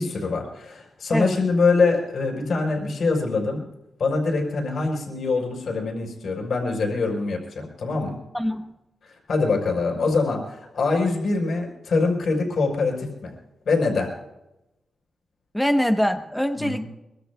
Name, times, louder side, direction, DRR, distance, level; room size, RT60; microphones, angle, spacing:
voice 1, 0.0-3.6 4.0-8.2 9.0-13.3 13.6-14.1 16.6-16.9, left 3 dB, 60° left, 0 dB, 4.6 m, -24 dB
voice 2, 8.3-8.7 15.5-16.9, equal, 5° left, 6 dB, 0.9 m, -23 dB
25.0 x 23.5 x 2.3 m, 0.91 s
wide cardioid pair, 170°, 0 cm